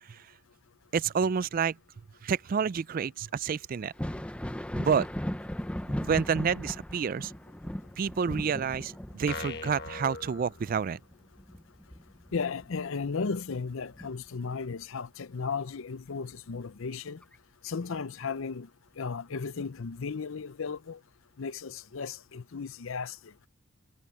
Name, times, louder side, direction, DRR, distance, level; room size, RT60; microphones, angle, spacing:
voice 1, 0.9-1.8 2.2-3.9 4.8-5.1 6.0-7.3 8.0-11.0, right 6 dB, 40° right, 0.3 m, -29 dB
Thunder, 3.8-13.2 13.5-14.8 16.3-16.4 17.2-17.4, equal, 5° left, 0.6 m, -38 dB
sound 1, 9.3-11.2, left 4 dB, 50° left, 1.4 m, -40 dB
voice 2, 12.3-17.2 17.6-18.7 19.0-21.0 21.4-23.2, left 5 dB, 70° left, 0.6 m, -35 dB
head